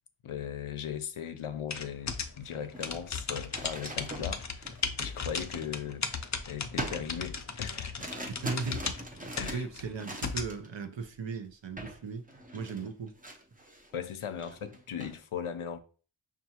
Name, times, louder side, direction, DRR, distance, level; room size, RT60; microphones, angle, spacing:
voice 1, 0.2-4.7 5.0-8.1 9.4-9.7 12.8-12.9 13.9-15.8, left 8 dB, 80° left, 0.6 m, -38 dB
sound 1, 1.7-10.5, left 5 dB, 35° left, 0.5 m, -36 dB
sound 2, 2.1-2.3 2.6-6.2 6.8-10.7 11.0-11.3 11.8-12.0 12.3-13.9 14.3-15.2, right 1 dB, 15° right, 0.6 m, -42 dB
voice 2, 8.3-8.9 9.5-12.2 12.5-13.1, right 4 dB, 60° right, 0.7 m, -37 dB
5.6 x 2.5 x 2.8 m
wide cardioid pair, 40°, 50 cm